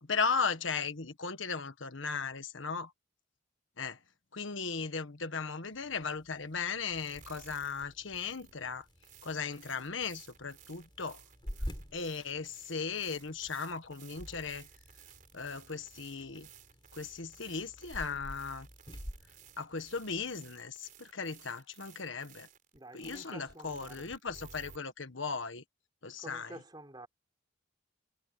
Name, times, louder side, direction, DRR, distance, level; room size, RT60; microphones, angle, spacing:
voice 1, 0.0-2.9 3.8-4.0 4.3-8.9 9.2-11.2 11.9-14.7 15.3-16.5 16.9-18.7 19.6-22.5 22.9-25.6 26.0-26.6, left 5 dB, 75° left, 1.5 m, -37 dB
sound 1, 5.7-20.4, equal, 25° left, 6.3 m, -49 dB
sound 2, 6.9-24.8, right 7 dB, 40° right, 4.7 m, -57 dB
voice 2, 22.7-24.1 26.2-27.1, right 1 dB, 20° right, 3.8 m, -49 dB
head